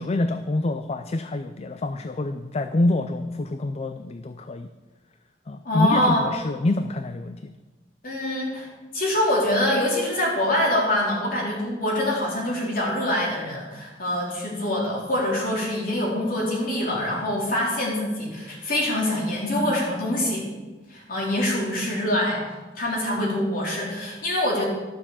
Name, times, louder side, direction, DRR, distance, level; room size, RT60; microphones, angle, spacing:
voice 1, 0.0-4.7 5.5-7.5, left 2 dB, 35° left, 9 dB, 0.4 m, -26 dB
voice 2, 5.6-6.2 8.0-8.7 8.9-20.5 20.9-22.4 22.8-24.6, left 1 dB, 55° left, -3 dB, 3.8 m, -24 dB
12.5 x 6.9 x 7.3 m, 1.2 s
head